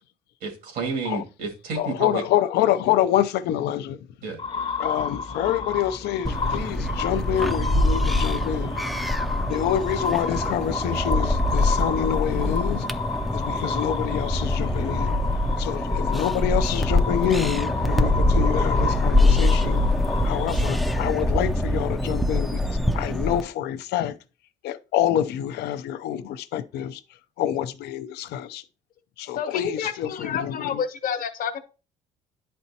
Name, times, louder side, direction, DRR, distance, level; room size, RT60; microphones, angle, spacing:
voice 1, 0.4-2.2 4.2-4.4, right 4 dB, 80° right, 2.0 m, -30 dB
voice 2, 1.8-4.0 4.8-8.7 9.4-12.9 13.3-15.1 15.6-19.8 20.2-24.1 24.6-27.0 27.4-28.6 29.2-30.8, left 11 dB, 75° left, 0.5 m, -27 dB
sound 1, 4.4-21.5, left 4 dB, 35° left, 0.8 m, -31 dB
sound 2, 6.2-23.4, left 1 dB, ahead, 0.4 m, -24 dB
voice 3, 29.3-31.6, left 7 dB, 55° left, 1.1 m, -29 dB
10.5 x 4.3 x 2.8 m
cardioid pair, 110°, 17 cm